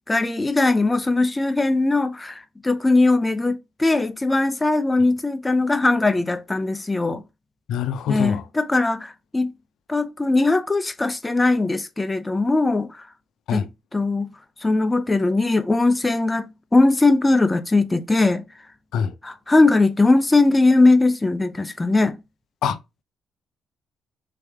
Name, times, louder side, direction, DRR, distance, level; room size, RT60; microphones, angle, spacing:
voice 1, 0.1-7.2 8.1-9.5 9.9-13.0 13.5-13.6 13.9-14.3 14.6-18.5 19.2-22.2, left 2 dB, 15° left, 0.6 m, -20 dB
voice 2, 7.7-8.4 13.5-13.7 18.9-19.1 22.6-22.8, left 8 dB, 80° left, 0.6 m, -24 dB
4.1 x 3.4 x 3.5 m
cardioid pair, 90°, 0 cm